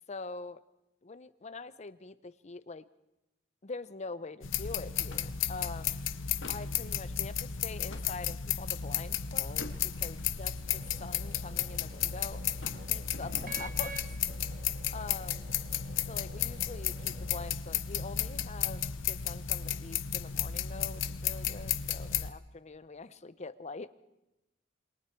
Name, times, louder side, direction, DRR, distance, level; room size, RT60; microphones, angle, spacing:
voice 1, 0.1-0.6 1.0-2.8 3.6-6.0 6.5-12.5 12.9-14.0 14.9-15.5 16.1-23.9, left 3 dB, 35° left, 14 dB, 0.7 m, -44 dB
sound 1, 4.4-22.3, left 9 dB, 85° left, 0.9 m, -34 dB
sound 2, 4.5-4.7 5.1-5.8 6.3-6.8 7.4-8.2 8.8-9.0 9.5-10.6 11.2-12.0 12.3-13.8, left 2 dB, 65° left, 2.2 m, -48 dB
sound 3, 10.6-17.5, right 3 dB, 45° right, 1.8 m, -50 dB
27.5 x 22.5 x 4.5 m, 0.94 s
head